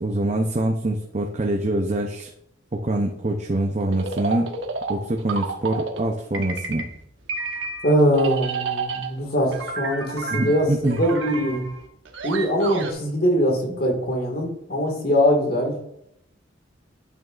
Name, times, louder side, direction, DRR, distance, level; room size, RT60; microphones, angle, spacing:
voice 1, 0.0-2.3 2.8-4.6 4.9-6.9 10.3-11.0, right 1 dB, 35° right, 2 dB, 0.7 m, -24 dB
sound 1, 3.9-6.1 6.3-7.0 7.3-9.2 9.5-12.9, right 4 dB, 70° right, 1.2 m, -30 dB
voice 2, 7.8-11.6 12.2-15.7, equal, 50° left, 2 dB, 1.9 m, -22 dB
9.3 x 8.6 x 2.5 m, 0.77 s
head